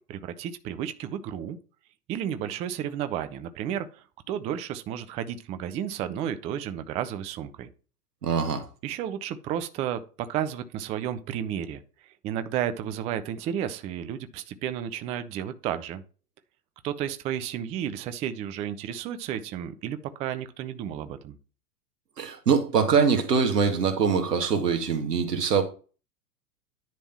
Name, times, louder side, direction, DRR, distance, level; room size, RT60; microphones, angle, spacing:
voice 1, 0.1-1.6 2.1-7.7 8.8-11.8 12.2-16.0 16.8-21.4, right 10 dB, 15° right, 0.4 m, -32 dB
voice 2, 8.2-8.7 22.2-25.6, right 6 dB, 80° right, 2.0 m, -23 dB
10.5 x 3.5 x 5.8 m
hypercardioid pair, 100°, 47 cm